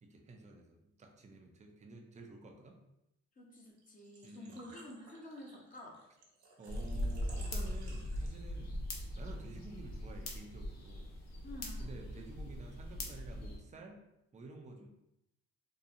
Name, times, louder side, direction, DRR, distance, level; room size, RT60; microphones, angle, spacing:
voice 1, 0.0-2.8 4.2-4.7 6.6-8.8 9.2-11.1 11.8-14.0 14.3-14.9, right 2 dB, 25° right, 2 dB, 0.5 m, -51 dB
voice 2, 3.4-6.0 11.4-11.9, left 1 dB, 25° left, -1 dB, 0.7 m, -50 dB
Engine / Trickle dribble / Fill (with liquid), 3.8-8.6, right 3 dB, 65° right, 0.8 m, -57 dB
sound 1, 6.7-13.6, left 1 dB, 60° left, 0.8 m, -40 dB
2.8 x 2.3 x 2.5 m, 0.84 s
cardioid pair, 90°, 30 cm